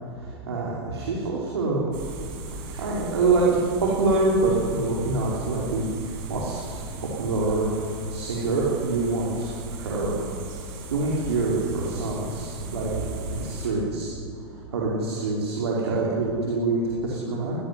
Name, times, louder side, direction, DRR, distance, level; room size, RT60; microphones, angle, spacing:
voice 1, 0.2-1.8 2.5-10.3 10.9-13.0 13.3-14.1 14.7-17.6, right 3 dB, 70° right, -5 dB, 5.3 m, -26 dB
sound 1, 1.9-13.7, right 3 dB, 50° right, 7.2 m, -38 dB
22.0 x 19.0 x 9.9 m, 2.3 s
figure-of-eight pair, 95°, 14 cm